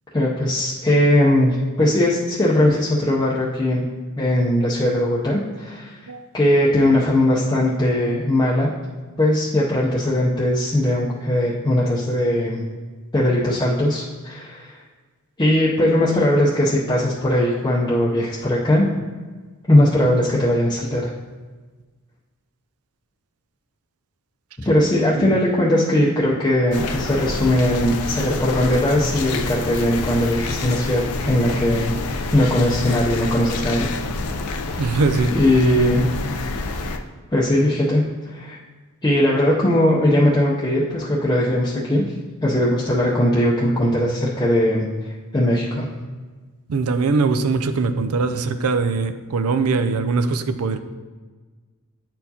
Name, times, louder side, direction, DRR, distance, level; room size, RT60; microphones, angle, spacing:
voice 1, 0.1-3.8 4.2-8.7 9.2-12.6 13.1-14.8 15.4-18.8 19.7-21.1 24.6-31.9 32.3-33.9 34.5-34.8 35.3-36.1 37.3-38.6 39.0-42.0 42.4-44.9 45.3-45.9, left 1 dB, 20° left, -6 dB, 0.6 m, -19 dB
sound 1, 26.7-37.0, left 3 dB, 90° left, 0.5 m, -28 dB
voice 2, 34.8-35.3 46.7-50.8, right 4 dB, 75° right, 10 dB, 0.4 m, -21 dB
8.9 x 4.5 x 2.8 m, 1.4 s
head